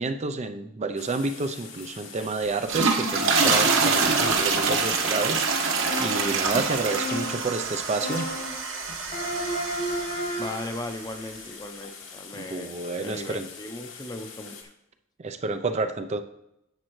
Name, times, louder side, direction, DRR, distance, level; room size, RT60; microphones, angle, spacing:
voice 1, 0.0-8.3 12.3-13.5 15.2-16.2, right 3 dB, 30° right, 8 dB, 0.4 m, -30 dB
sound 1, 1.0-14.6, left 6 dB, 65° left, 1.6 m, -44 dB
sound 2, 2.5-10.8, right 4 dB, 65° right, 1.2 m, -25 dB
sound 3, 5.8-6.5 6.9-7.6 8.0-8.7 9.1-10.7, equal, 40° left, 1.4 m, -32 dB
voice 2, 10.4-14.7, left 1 dB, 20° left, 7 dB, 0.7 m, -37 dB
10.5 x 7.5 x 3.1 m, 0.83 s
head